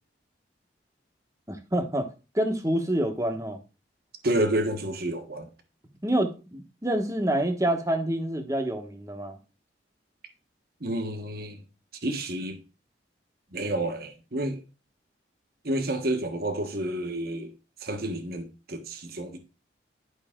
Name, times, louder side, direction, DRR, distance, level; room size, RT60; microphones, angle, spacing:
voice 1, 1.5-3.6 6.0-9.4, right 1 dB, 15° right, 1.2 m, -27 dB
voice 2, 4.2-5.5 10.8-11.6 12.0-12.6 13.5-14.6 15.6-17.5 17.8-19.4, right 1 dB, 55° right, 1.4 m, -29 dB
11.5 x 5.8 x 3.7 m
head